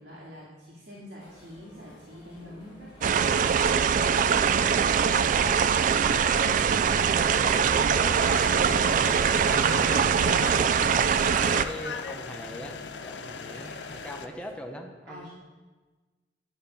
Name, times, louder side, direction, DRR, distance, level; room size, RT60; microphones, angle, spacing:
voice 1, 0.0-3.2 3.5-5.6 15.1-15.3, equal, 85° right, -7 dB, 2.1 m, -45 dB
sound 1, 1.2-14.5, equal, 40° left, 3.0 m, -52 dB
sound 2, 3.0-11.6, right 7 dB, 45° right, 0.3 m, -23 dB
voice 2, 6.3-6.7 7.1-11.1 11.6-15.3, equal, 5° left, 2 dB, 0.8 m, -42 dB
sound 3, 8.1-14.3, left 5 dB, 80° left, 0.6 m, -38 dB
10.5 x 5.1 x 5.7 m, 1.3 s
head